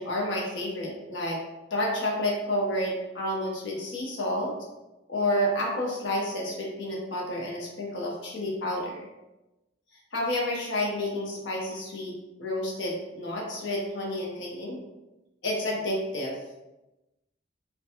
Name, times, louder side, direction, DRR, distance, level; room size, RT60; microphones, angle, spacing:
voice 1, 0.0-1.4 1.7-4.5 5.1-9.0 10.1-12.1 12.4-14.8 15.4-16.4, left 1 dB, 65° left, -2 dB, 0.6 m, -30 dB
2.5 x 2.1 x 2.7 m, 0.99 s
head